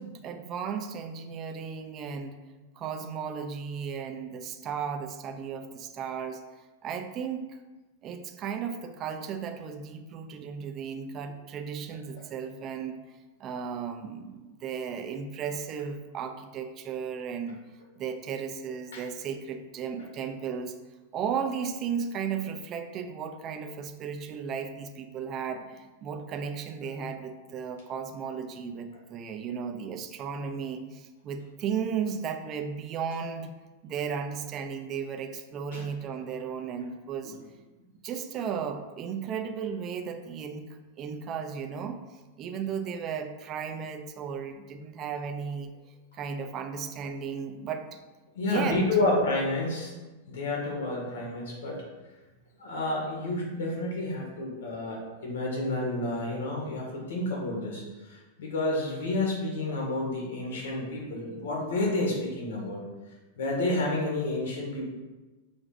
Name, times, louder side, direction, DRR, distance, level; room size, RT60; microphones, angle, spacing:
voice 1, 0.0-2.4 2.8-6.4 6.8-7.6 8.0-13.0 13.4-17.6 18.0-20.7 21.1-33.5 33.8-37.4 38.0-42.0 42.4-45.7 46.1-48.0 48.4-48.8, right 7 dB, 20° right, 6 dB, 0.4 m, -35 dB
voice 2, 48.4-50.0 50.3-51.8 52.6-62.8 63.4-64.8, left 2 dB, 80° left, -2 dB, 1.8 m, -30 dB
6.4 x 6.1 x 2.5 m, 1.2 s
supercardioid pair, 180°, 0 cm